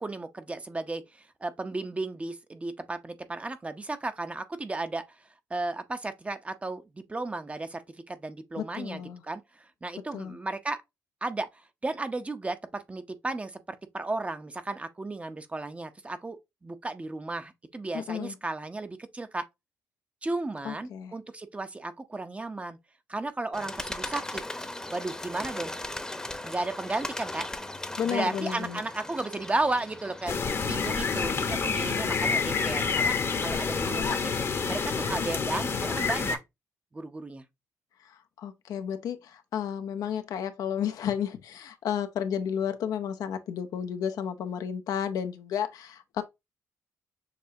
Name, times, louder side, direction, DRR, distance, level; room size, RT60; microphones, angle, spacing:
voice 1, 0.0-10.8 11.2-19.4 20.2-22.8 23.1-24.4 24.9-25.7 26.4-27.5 28.0-34.2 34.7-36.4 36.9-37.4, right 2 dB, 20° right, 0.7 m, -34 dB
voice 2, 8.6-9.2 10.1-10.4 17.9-18.3 20.6-21.1 28.0-28.8 38.1-46.2, left 8 dB, 75° left, 0.6 m, -32 dB
Bird, 23.5-31.2, left 1 dB, 10° left, 0.9 m, -38 dB
sound 1, 30.3-36.4, left 5 dB, 45° left, 0.9 m, -28 dB
6.7 x 2.8 x 2.7 m
cardioid pair, 80°, 6 cm